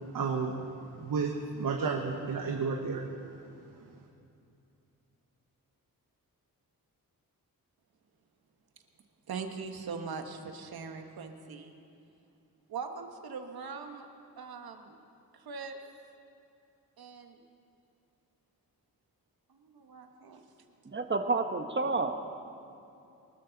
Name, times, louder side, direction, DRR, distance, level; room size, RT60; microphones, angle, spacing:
voice 1, 0.1-0.5 1.0-3.1, right 5 dB, 65° right, 2 dB, 1.3 m, -31 dB
voice 2, 9.3-11.7 12.7-14.1 14.4-15.0 15.3-15.8 17.0-17.4 19.5-20.4, right 5 dB, 80° right, 5 dB, 1.4 m, -41 dB
voice 3, 20.8-22.3, right 3 dB, 30° right, 6 dB, 1.2 m, -30 dB
24.0 x 13.0 x 4.0 m, 2.7 s
cardioid pair, 80°, 36 cm